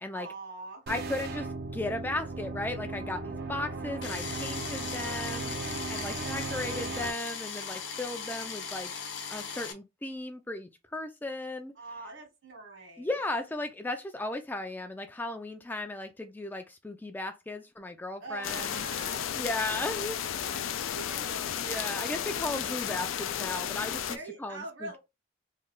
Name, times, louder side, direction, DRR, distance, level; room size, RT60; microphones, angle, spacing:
voice 1, 0.1-0.8 5.5-6.5 11.8-13.1 18.2-19.4 20.4-22.8 24.1-25.0, right 3 dB, 70° right, 1.6 m, -44 dB
voice 2, 0.9-5.5 5.9-8.9 9.3-11.7 13.0-18.9 19.4-20.2 21.6-25.0, left 2 dB, 10° left, 0.3 m, -36 dB
sound 1, 0.9-7.1, right 3 dB, 50° right, 0.5 m, -37 dB
sound 2, 4.0-9.7, left 6 dB, 60° left, 0.7 m, -38 dB
sound 3, 18.4-24.2, left 9 dB, 85° left, 0.4 m, -33 dB
3.2 x 2.2 x 3.7 m
head